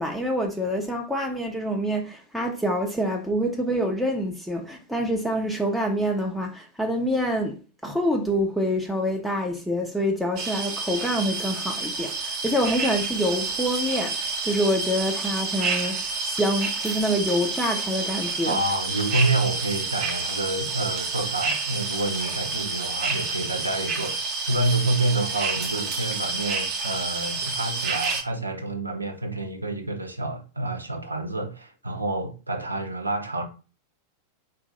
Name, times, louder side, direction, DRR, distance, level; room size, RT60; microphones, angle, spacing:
voice 1, 0.0-7.6 7.8-18.6, equal, ahead, 0.7 m, -26 dB
sound 1, 10.4-28.2, right 4 dB, 40° right, 0.9 m, -29 dB
voice 2, 18.4-33.4, right 2 dB, 80° right, 0.7 m, -28 dB
4.2 x 2.6 x 3.9 m
figure-of-eight pair, 90°, 0 cm